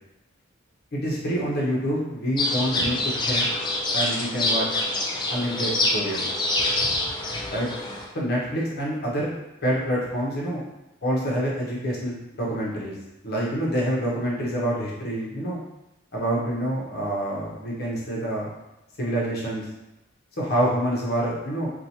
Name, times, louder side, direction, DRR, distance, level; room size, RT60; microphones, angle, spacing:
voice 1, 0.9-3.5 3.9-4.7 5.3-6.3 7.5-7.7 8.1-9.3 9.6-10.6 11.0-13.0 13.2-15.6 16.1-18.5 19.0-19.7 20.4-21.7, equal, 50° left, -4 dB, 0.8 m, -27 dB
sound 1, 2.4-8.0, left 2 dB, 20° left, 0.4 m, -26 dB
2.8 x 2.2 x 2.7 m, 0.92 s
head